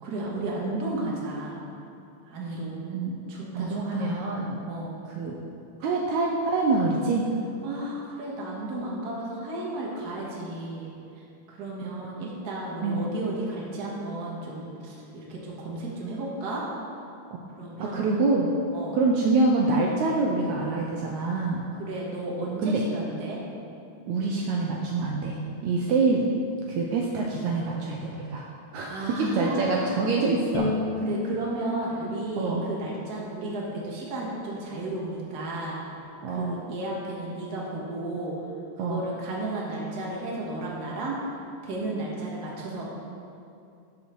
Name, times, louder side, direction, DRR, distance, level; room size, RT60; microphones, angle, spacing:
voice 1, 0.0-1.6 2.3-2.8 3.3-4.1 4.7-4.9 7.6-16.6 17.6-18.1 18.7-19.0 21.8-23.4 28.9-30.0 31.0-35.8 36.3-38.4 38.8-41.2 41.6-42.8, right 2 dB, 40° right, -4 dB, 1.7 m, -33 dB
voice 2, 3.5-4.7 5.1-5.4 5.8-7.3 12.2-12.3 12.8-13.0 17.3-17.4 17.8-18.5 18.9-21.6 22.6-22.8 24.1-26.3 26.7-28.5 28.7-30.7 32.4-32.7 36.2-36.6 38.8-39.1, right 3 dB, 75° right, -1 dB, 1.9 m, -26 dB
Bowed string instrument, 30.5-33.8, left 3 dB, 80° left, 2.5 m, -34 dB
13.5 x 5.5 x 4.6 m, 2.6 s
omnidirectional pair, 3.7 m